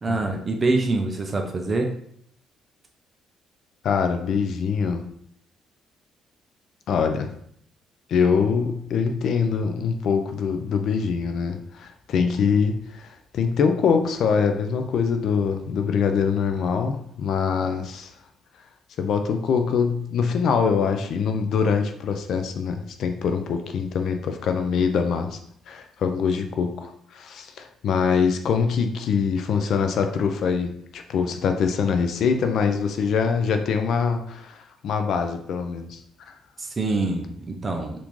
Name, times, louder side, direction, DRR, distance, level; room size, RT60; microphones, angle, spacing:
voice 1, 0.0-1.9 36.6-38.0, right 3 dB, 25° right, 2 dB, 0.3 m, -25 dB
voice 2, 3.8-5.1 6.9-7.3 8.1-18.1 19.0-25.4 25.7-34.6 34.8-36.0 36.3-36.4, left 6 dB, 55° left, 6 dB, 0.3 m, -24 dB
3.5 x 2.5 x 3.0 m, 0.69 s
cardioid pair, 160°, 0 cm